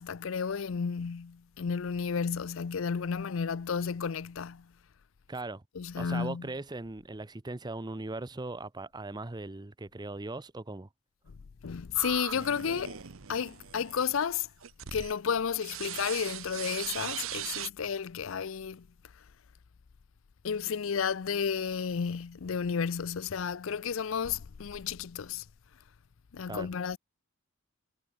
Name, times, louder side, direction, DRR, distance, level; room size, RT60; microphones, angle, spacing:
voice 1, 0.0-4.7 5.7-6.5 11.3-11.4 11.6-13.0 13.3-14.5 14.9-18.9 20.4-25.4 26.3-27.0, left 6 dB, 70° left, 0.5 m, -32 dB
voice 2, 5.3-5.6 6.0-10.9 26.5-26.7, right 2 dB, 20° right, 0.7 m, -39 dB
sound 1, 11.9-15.2 15.6-17.7, right 10 dB, 75° right, 0.9 m, -40 dB
head